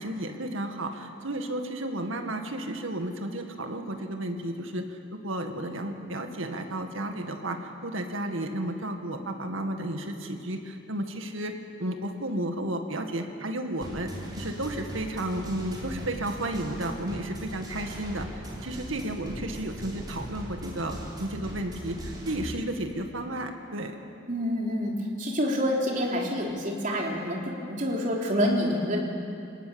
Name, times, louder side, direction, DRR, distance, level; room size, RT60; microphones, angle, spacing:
voice 1, 0.0-11.5 11.8-23.9, right 1 dB, 75° right, 5 dB, 1.9 m, -33 dB
sound 1, 13.8-22.5, right 1 dB, 20° right, 3.7 m, -39 dB
voice 2, 24.3-29.0, equal, 40° right, -1 dB, 3.5 m, -27 dB
26.5 x 18.5 x 7.1 m, 2.6 s
head